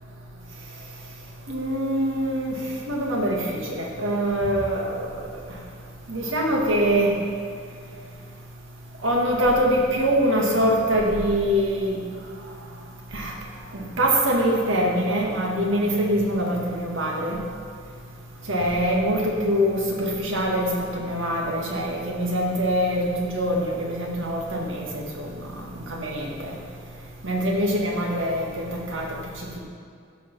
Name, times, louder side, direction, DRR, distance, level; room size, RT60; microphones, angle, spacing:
voice 1, 1.5-2.5 2.9-5.0 6.1-7.1 9.0-12.0 13.1-13.3 13.7-17.4 18.5-25.3 25.8-26.6 27.2-28.5 28.9-29.1, equal, 75° right, -1 dB, 1.9 m, -24 dB
14.5 x 5.2 x 6.1 m, 2.3 s
head